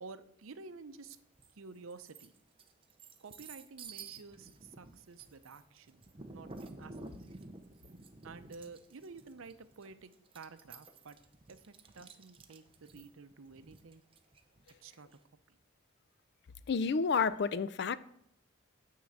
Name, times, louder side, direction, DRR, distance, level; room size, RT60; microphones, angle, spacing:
voice 1, 0.0-1.2 1.6-2.3 3.2-6.0 6.3-6.5 6.8-6.9 8.2-11.2 11.5-14.0 14.8-15.1, right 4 dB, 75° right, 0.6 m, -51 dB
sound 1, 1.1-1.5 1.9-15.2, right 3 dB, 25° right, 0.6 m, -52 dB
voice 2, 16.7-18.0, left 5 dB, 55° left, 0.4 m, -30 dB
9.4 x 3.8 x 7.1 m
head